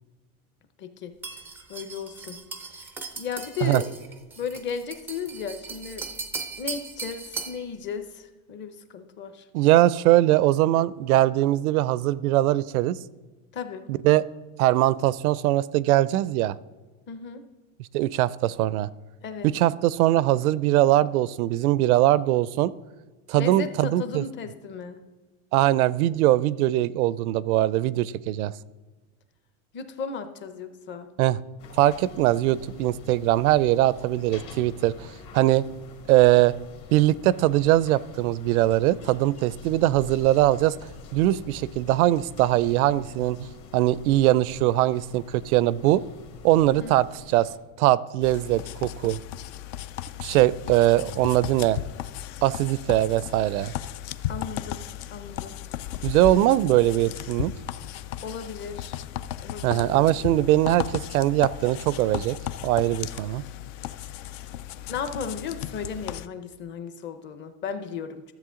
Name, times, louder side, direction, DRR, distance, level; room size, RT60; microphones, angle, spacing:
voice 1, 0.8-1.1 1.7-2.4 2.7-2.9 3.1-3.9 4.4-6.1 6.6-9.4 13.5-13.8 17.1-17.4 19.2-19.5 23.4-25.0 29.7-31.1 46.8-47.0 54.3-54.8 55.1-55.6 58.2-59.1 59.4-60.0 64.9-68.2, left 6 dB, 25° left, 9 dB, 0.7 m, -35 dB
sound 1, 1.2-7.7, right 4 dB, 5° right, 0.3 m, -38 dB
voice 2, 9.5-13.0 13.9-14.2 14.6-16.6 17.9-18.9 19.4-22.7 23.3-24.2 25.5-28.5 31.2-31.4 31.8-35.1 35.3-35.6 36.1-36.5 36.9-40.8 41.1-43.4 43.7-46.0 46.4-47.5 47.8-49.2 50.2-51.8 52.4-53.7 56.0-57.5 59.6-62.4 62.6-63.4, right 15 dB, 85° right, 19 dB, 0.5 m, -21 dB
sound 2, 31.6-47.6, left 5 dB, 45° left, 1.5 m, -46 dB
sound 3, 48.2-66.3, left 12 dB, 60° left, 0.5 m, -35 dB
13.0 x 7.5 x 3.7 m, 1.3 s
supercardioid pair, 140°, 42 cm